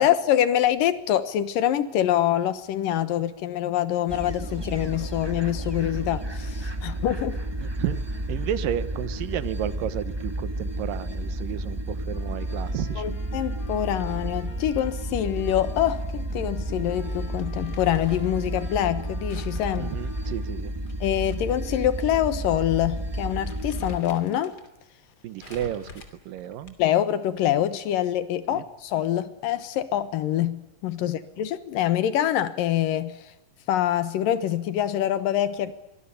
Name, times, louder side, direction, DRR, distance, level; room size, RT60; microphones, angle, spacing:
voice 1, 0.0-7.4 13.0-19.9 21.0-24.6 26.8-33.3 33.7-35.7, left 11 dB, 85° left, 3.0 m, -25 dB
sound 1, 4.1-24.0, right 1 dB, 25° right, 0.5 m, -32 dB
voice 2, 7.6-8.0 8.3-13.2 19.8-20.7 25.2-26.8 28.5-28.6 31.0-31.1, right 11 dB, 80° right, 2.8 m, -32 dB
Trumpet, 12.1-20.5, left 4 dB, 55° left, 4.4 m, -51 dB
Crumpling crinkling, 17.4-18.4 19.3-21.4 21.7-21.8 22.6-22.8 23.1-24.7 25.4-27.0, left 3 dB, 30° left, 3.2 m, -47 dB
24.5 x 19.5 x 10.0 m
omnidirectional pair, 3.9 m